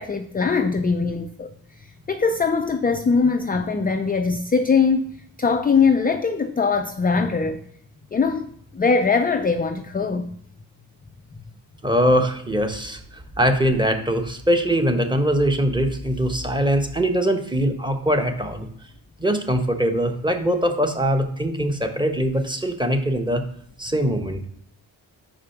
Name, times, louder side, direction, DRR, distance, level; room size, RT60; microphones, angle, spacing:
voice 1, 0.0-7.6 8.1-10.3, left 5 dB, 20° left, 7 dB, 0.5 m, -22 dB
voice 2, 11.8-18.7 19.2-23.4 23.8-24.4, equal, 10° right, 5 dB, 1.2 m, -22 dB
5.5 x 5.0 x 5.8 m, 0.66 s
cardioid pair, 60°, 48 cm